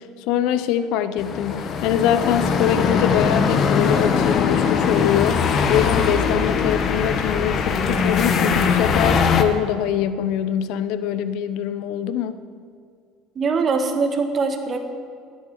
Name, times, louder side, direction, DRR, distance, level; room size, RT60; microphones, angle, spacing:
voice 1, 0.0-12.4, left 9 dB, 70° left, 12 dB, 0.8 m, -23 dB
sound 1, 1.2-9.4, left 6 dB, 50° left, 1.4 m, -21 dB
voice 2, 13.3-14.8, right 4 dB, 40° right, 5 dB, 1.7 m, -22 dB
14.0 x 10.5 x 7.2 m, 2.1 s
supercardioid pair, 90°, 0 cm